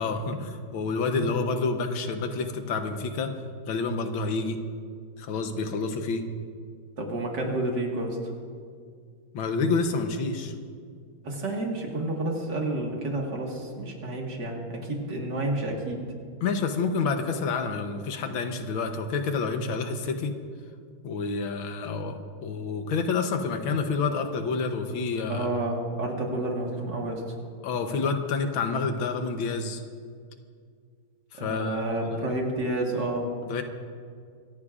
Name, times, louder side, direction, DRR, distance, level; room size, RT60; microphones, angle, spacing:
voice 1, 0.0-3.3 3.7-4.6 5.2-6.2 9.3-10.5 16.4-20.3 21.0-25.5 27.6-29.8 31.3-31.8 33.4-33.6, left 4 dB, 80° left, 6 dB, 1.7 m, -28 dB
voice 2, 7.0-8.2 11.2-16.0 25.3-27.2 31.4-33.3, right 1 dB, 60° right, -1 dB, 2.3 m, -30 dB
25.5 x 14.5 x 2.5 m, 2.1 s
omnidirectional pair, 2.2 m